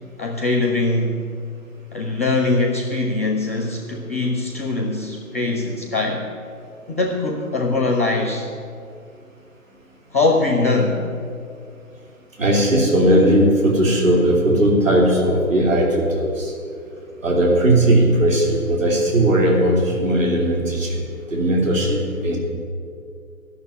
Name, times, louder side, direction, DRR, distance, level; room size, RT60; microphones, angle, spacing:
voice 1, 0.2-1.2 1.9-6.2 6.9-8.5 10.1-11.0, left 3 dB, 10° left, 2 dB, 0.5 m, -22 dB
voice 2, 12.4-16.5 17.2-22.4, right 1 dB, 60° right, -2 dB, 3.3 m, -18 dB
12.0 x 6.8 x 9.8 m, 2.4 s
figure-of-eight pair, 135°, 44 cm